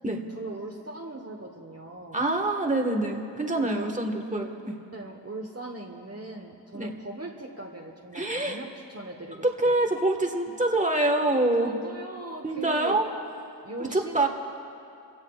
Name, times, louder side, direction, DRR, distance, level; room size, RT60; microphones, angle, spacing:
voice 1, 0.3-2.2 3.5-3.9 4.9-9.8 11.6-13.0 13.6-14.3, right 2 dB, 35° right, 0 dB, 1.2 m, -39 dB
voice 2, 2.1-4.8 6.7-6.9 8.1-8.6 9.4-11.7 12.4-13.1 13.8-14.3, right 2 dB, 15° right, 2 dB, 1.4 m, -25 dB
27.5 x 16.5 x 2.4 m, 2.6 s
wide cardioid pair, 55°, 45 cm